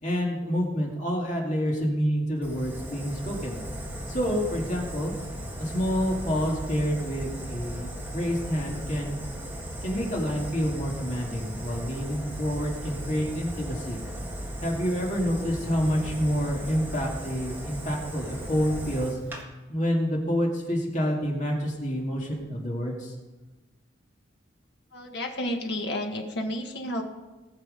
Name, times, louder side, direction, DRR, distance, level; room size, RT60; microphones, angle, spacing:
voice 1, 0.0-3.6 4.1-5.1 5.6-9.2 9.8-14.0 14.6-19.2 19.7-23.1, equal, 40° left, -1 dB, 2.3 m, -28 dB
Fire, 2.4-19.4, equal, 10° right, 1.8 m, -37 dB
voice 2, 24.9-27.0, left 1 dB, 55° left, 2 dB, 1.7 m, -31 dB
19.5 x 6.6 x 5.2 m, 1.1 s
head